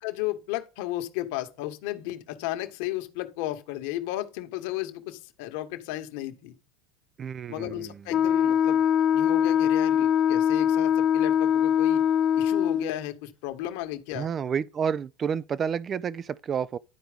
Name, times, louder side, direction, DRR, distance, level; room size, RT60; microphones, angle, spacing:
voice 1, 0.0-6.5 7.5-8.9 9.1-12.0 12.4-14.3, left 14 dB, 65° left, 1.5 m, -34 dB
voice 2, 7.2-8.0 14.1-16.8, right 7 dB, 25° right, 0.4 m, -30 dB
Wind instrument woodwind instrument, 8.1-13.0, left 9 dB, 40° left, 0.5 m, -22 dB
11.5 x 4.6 x 5.1 m
supercardioid pair, 140°, 0 cm